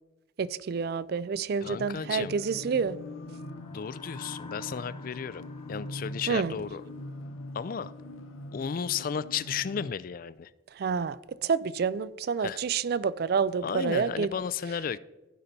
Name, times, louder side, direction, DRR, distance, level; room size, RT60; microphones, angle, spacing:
voice 1, 0.4-3.0 6.3-6.6 10.8-14.3, right 5 dB, 50° right, 0.3 m, -28 dB
sound 1, 1.6-9.9, left 1 dB, 90° left, 0.7 m, -42 dB
voice 2, 1.6-2.3 3.7-5.4 5.7-6.8 7.5-7.9 8.5-10.5 12.4-12.6 13.6-15.0, left 7 dB, 45° left, 0.3 m, -33 dB
sound 2, 3.2-7.7, left 3 dB, 25° left, 0.7 m, -53 dB
15.5 x 5.3 x 4.1 m
head